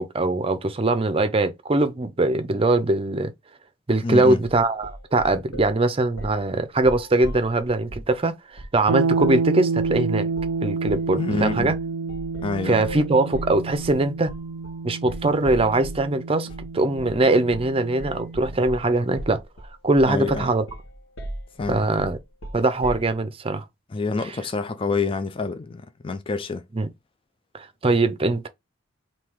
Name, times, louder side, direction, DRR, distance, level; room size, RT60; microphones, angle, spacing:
voice 1, 0.0-3.3 3.9-10.3 10.6-11.7 12.6-14.3 14.8-16.5 16.7-19.4 19.8-20.6 21.7-22.2 22.5-23.6 26.7-26.9 27.5-28.5, right 2 dB, 30° right, 0.6 m, -22 dB
voice 2, 4.0-4.4 11.2-11.7 12.4-12.9 20.1-20.5 21.6-21.9 23.9-26.6, left 3 dB, 25° left, 0.4 m, -27 dB
sound 1, 4.4-5.8 6.2-6.4 6.8-8.1 8.6-8.8 9.2-9.4 9.8-10.0 10.4-10.6 10.9-16.1 16.5-16.7 17.0-17.2 17.5-17.7 18.0-23.1, right 1 dB, 90° left, 1.3 m, -37 dB
sound 2, 8.9-18.7, right 4 dB, 75° right, 0.4 m, -29 dB
3.7 x 2.8 x 4.5 m
head